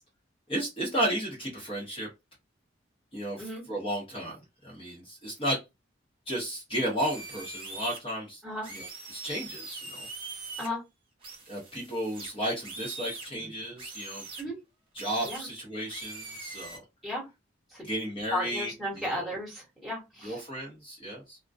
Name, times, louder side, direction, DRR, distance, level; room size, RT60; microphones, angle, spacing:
voice 1, 0.5-2.1 3.1-3.4 3.7-4.4 4.6-5.6 6.3-8.4 8.7-8.8 9.1-10.1 11.5-14.2 14.9-16.8 17.8-18.7 19.0-19.3 20.2-21.4, right 1 dB, 25° left, -4 dB, 0.8 m, -33 dB
sound 1, 7.0-8.0 8.6-10.7 11.2-13.3 13.8-14.4 15.0-15.4 15.9-16.8, right 3 dB, 25° right, 0.8 m, -42 dB
voice 2, 8.4-8.7 10.6-10.8 13.3-13.5 14.4-14.6 15.2-15.5 17.0-17.3 17.7-17.9 18.3-20.4, left 1 dB, ahead, -5 dB, 1.1 m, -35 dB
2.3 x 2.2 x 2.5 m, 0.23 s
head